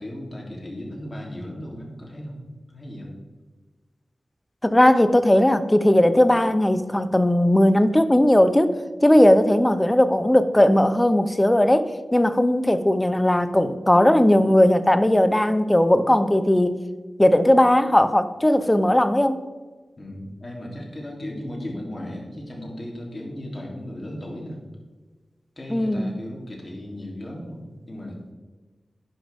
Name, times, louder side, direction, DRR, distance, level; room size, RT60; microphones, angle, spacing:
voice 1, 0.0-2.4 2.7-3.1 20.0-24.6 25.6-28.3, left 1 dB, 30° left, -1 dB, 3.2 m, -36 dB
voice 2, 4.6-8.7 9.0-16.8 17.2-19.4 25.7-26.1, left 1 dB, 15° left, 11 dB, 0.7 m, -18 dB
11.0 x 10.5 x 3.6 m, 1.3 s
wide cardioid pair, 95°, 0 cm